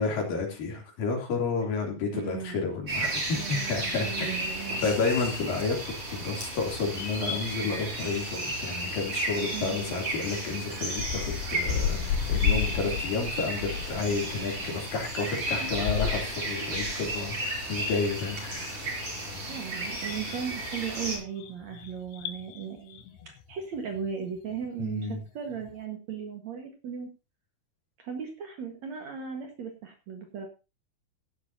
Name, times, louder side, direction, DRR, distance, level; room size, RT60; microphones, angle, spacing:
voice 1, 0.0-4.5 4.8-18.8 24.8-25.2, left 4 dB, 65° left, 1 dB, 4.7 m, -31 dB
voice 2, 2.1-2.7 3.4-4.9 9.5-9.8 15.6-15.8 16.0-16.1 17.4-17.9 19.5-27.1 28.0-30.5, right 7 dB, 55° right, 4 dB, 2.4 m, -37 dB
sound 1, 2.9-21.2, right 1 dB, 35° right, 5.9 m, -34 dB
sound 2, 11.0-25.2 25.5-25.7, left 8 dB, 80° left, 3.0 m, -34 dB
16.0 x 11.5 x 2.8 m, 0.29 s
omnidirectional pair, 4.4 m